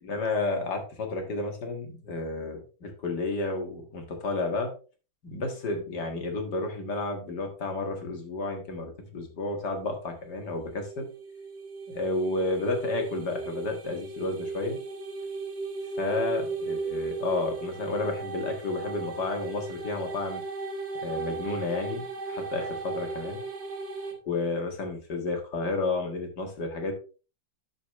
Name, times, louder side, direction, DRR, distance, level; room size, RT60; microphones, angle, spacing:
voice 1, 0.0-4.7 5.2-11.1 11.9-14.8 16.0-20.4 21.0-23.4 24.3-26.9, left 3 dB, 60° left, 3 dB, 2.3 m, -31 dB
sound 1, 10.6-24.1, right 3 dB, 40° right, 1.5 m, -36 dB
12.5 x 5.2 x 3.1 m, 0.35 s
omnidirectional pair, 2.0 m